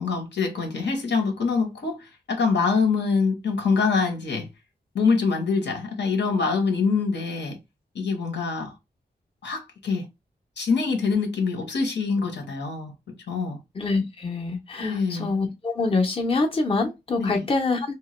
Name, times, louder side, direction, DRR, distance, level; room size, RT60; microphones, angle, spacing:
voice 1, 0.0-2.0 2.3-4.5 4.9-7.6 7.9-8.7 9.4-10.0 10.6-12.9 13.3-13.6 14.8-15.3 17.2-17.4, left 4 dB, 90° left, 0.9 m, -24 dB
voice 2, 13.7-17.9, left 3 dB, 30° left, 0.6 m, -25 dB
2.8 x 2.2 x 3.0 m
wide cardioid pair, 155°, 18 cm